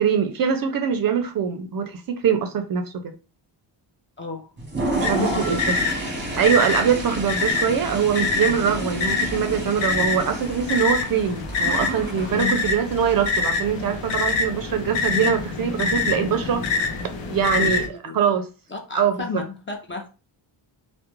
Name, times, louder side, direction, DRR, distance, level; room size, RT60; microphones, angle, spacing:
voice 1, 0.0-3.1 5.0-5.8 6.3-16.7 17.3-18.5 18.9-19.4, right 7 dB, 50° right, 0.4 m, -23 dB
voice 2, 4.2-4.5 5.1-6.3 8.4-8.6 9.9-10.1 12.3-12.6 15.1-15.3 17.0-17.1 17.6-18.2 18.7-20.1, left 4 dB, 25° left, 0.5 m, -32 dB
Toilet flush, 4.6-12.4, right 2 dB, 25° right, 0.8 m, -31 dB
sound 1, 5.0-17.9, left 4 dB, 65° left, 0.7 m, -26 dB
2.3 x 2.1 x 2.9 m
cardioid pair, 110°, 47 cm